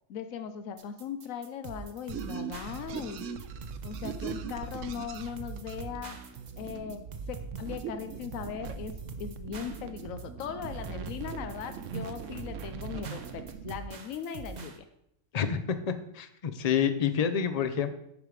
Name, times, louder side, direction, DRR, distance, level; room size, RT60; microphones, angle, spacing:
voice 1, 0.1-3.3 3.8-6.2 6.6-7.0 7.3-14.8, left 8 dB, 85° left, 9 dB, 1.1 m, -39 dB
sound 1, 0.8-14.8, right 4 dB, 40° right, 0.8 m, -44 dB
sound 2, 2.1-13.8, right 7 dB, 75° right, 1.0 m, -40 dB
voice 2, 15.3-15.8 16.1-17.9, left 8 dB, 40° left, 10 dB, 0.5 m, -28 dB
10.0 x 5.1 x 4.8 m, 0.77 s
omnidirectional pair, 1.4 m